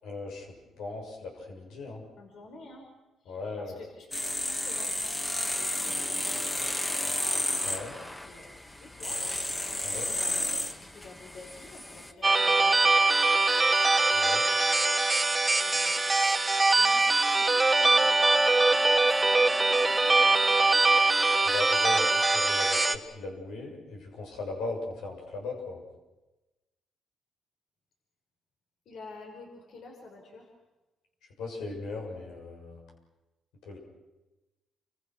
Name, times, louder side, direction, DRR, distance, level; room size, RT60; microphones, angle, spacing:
voice 1, 0.0-2.0 3.3-3.8 7.6-7.9 9.8-10.1 14.1-14.6 21.4-25.8 31.4-32.8 33.6-33.8, left 3 dB, 85° left, 1 dB, 7.0 m, -38 dB
voice 2, 2.2-2.8 3.3-4.1 4.4-7.2 7.9-8.5 8.8-13.0 15.7-16.4 16.8-21.1 28.9-30.5, left 2 dB, 65° left, 1 dB, 5.7 m, -50 dB
sound 1, 4.1-12.1, left 1 dB, 20° left, 2.0 m, -32 dB
sound 2, 12.2-23.0, right 3 dB, 20° right, 1.5 m, -23 dB
29.0 x 25.0 x 6.3 m, 1.1 s
cardioid pair, 90°, 0 cm